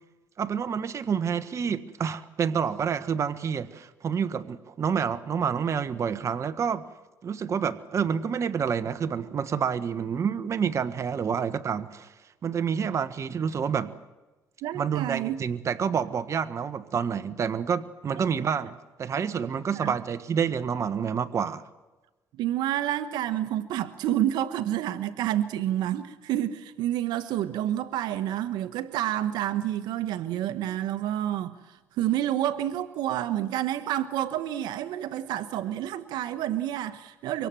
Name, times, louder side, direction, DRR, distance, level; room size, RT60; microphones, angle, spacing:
voice 1, 0.4-6.8 7.2-12.1 12.4-13.9 14.7-21.6, right 7 dB, 40° right, 1.2 m, -28 dB
voice 2, 14.6-15.4 18.2-18.3 19.8-19.9 22.4-31.6 32.0-37.5, right 12 dB, 75° right, 1.2 m, -29 dB
25.0 x 24.0 x 7.6 m
cardioid pair, 95°, 7 cm